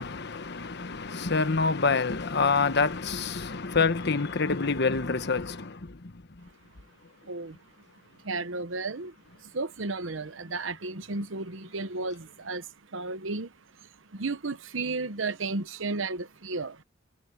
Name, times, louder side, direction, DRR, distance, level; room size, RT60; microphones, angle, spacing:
voice 1, 0.0-6.5, left 4 dB, 60° left, 1.2 m, -27 dB
voice 2, 7.2-7.6 8.2-16.8, right 3 dB, 85° right, 1.1 m, -34 dB
head